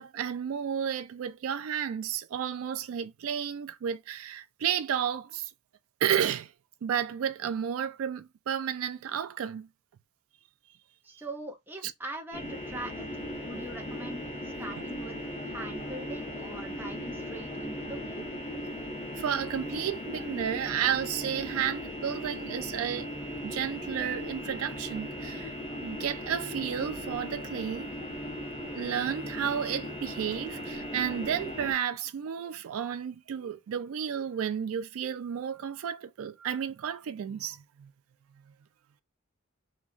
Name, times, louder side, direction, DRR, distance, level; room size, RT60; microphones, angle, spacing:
voice 1, 0.0-5.5 6.0-6.5 6.8-9.7 11.8-11.9 19.2-23.1 23.4-25.6 25.8-27.9 28.7-37.9, right 8 dB, 80° right, 0.3 m, -32 dB
voice 2, 11.0-18.2, right 1 dB, 10° right, 0.6 m, -42 dB
sound 1, 12.3-31.7, equal, 40° left, 1.2 m, -38 dB
2.9 x 2.2 x 2.5 m
head